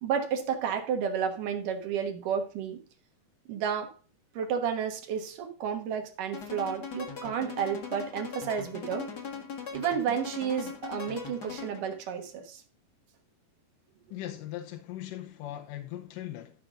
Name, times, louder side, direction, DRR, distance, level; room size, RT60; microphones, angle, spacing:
voice 1, 0.0-2.8 3.5-4.0 4.3-9.1 9.7-12.6, right 7 dB, 65° right, 2.8 m, -31 dB
sound 1, 6.3-12.0, left 6 dB, 45° left, 1.3 m, -40 dB
voice 2, 14.1-16.6, left 13 dB, 75° left, 2.2 m, -39 dB
13.0 x 6.0 x 3.7 m
omnidirectional pair, 4.3 m